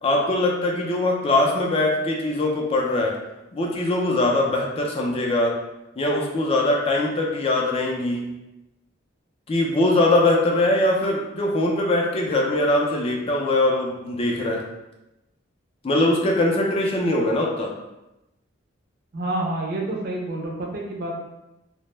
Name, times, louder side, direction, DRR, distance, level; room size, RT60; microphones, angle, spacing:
voice 1, 0.0-3.2 3.5-5.6 6.0-8.3 9.5-14.6 15.8-17.7, left 2 dB, 30° left, -1 dB, 0.3 m, -22 dB
voice 2, 19.1-21.2, right 1 dB, 50° right, 0 dB, 0.5 m, -28 dB
2.0 x 2.0 x 3.1 m, 0.94 s
head